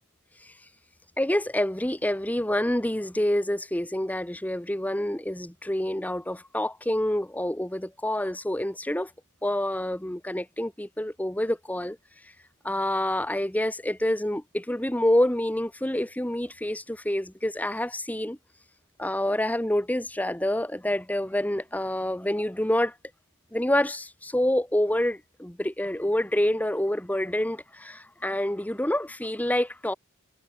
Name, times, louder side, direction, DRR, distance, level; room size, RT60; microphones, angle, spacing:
voice 1, 1.2-9.1 9.4-12.0 12.6-18.4 19.0-22.9 23.5-29.9, left 1 dB, 10° left, 1.2 m, -27 dB
head